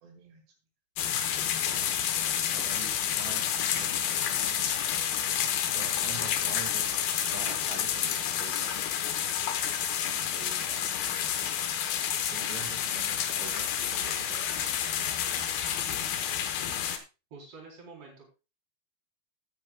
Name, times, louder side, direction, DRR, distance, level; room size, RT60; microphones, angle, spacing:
voice 1, 0.0-0.4 2.5-4.3 5.6-6.9 7.2-8.7 10.3-11.3 12.3-14.5, right 6 dB, 80° right, 2 dB, 4.1 m, -46 dB
sound 1, 1.0-17.0, left 9 dB, 70° left, 2.8 m, -29 dB
voice 2, 17.3-18.3, right 4 dB, 40° right, -1 dB, 4.6 m, -47 dB
17.0 x 9.0 x 2.3 m, 0.29 s
omnidirectional pair, 4.8 m